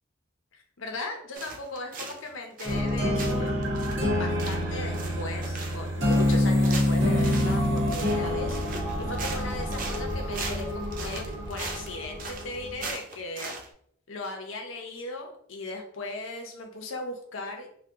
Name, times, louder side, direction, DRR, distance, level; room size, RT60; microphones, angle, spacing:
voice 1, 0.5-3.6 4.1-8.6 9.0-13.5 14.1-17.7, left 2 dB, 75° left, 3 dB, 0.7 m, -37 dB
sound 1, 1.3-2.3 2.6-2.9 3.2-13.7, right 3 dB, 40° right, 0.4 m, -39 dB
sound 2, 2.6-12.9, left 1 dB, 60° right, 0.9 m, -27 dB
2.7 x 2.2 x 3.5 m, 0.66 s
head